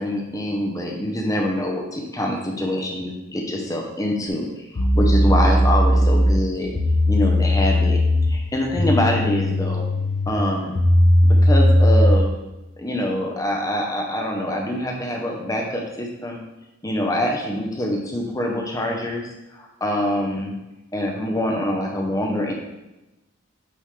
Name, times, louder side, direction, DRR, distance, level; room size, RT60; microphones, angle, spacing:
voice 1, 0.0-6.7 7.1-8.0 8.3-9.8 10.3-10.7 11.2-12.3 12.8-16.4 16.8-19.2 19.5-20.5 20.9-22.5, left 1 dB, 15° left, 0 dB, 0.8 m, -25 dB
sound 1, 4.3-4.4 4.8-12.3, left 1 dB, 55° left, 0.7 m, -18 dB
8.5 x 3.7 x 3.3 m, 0.99 s
head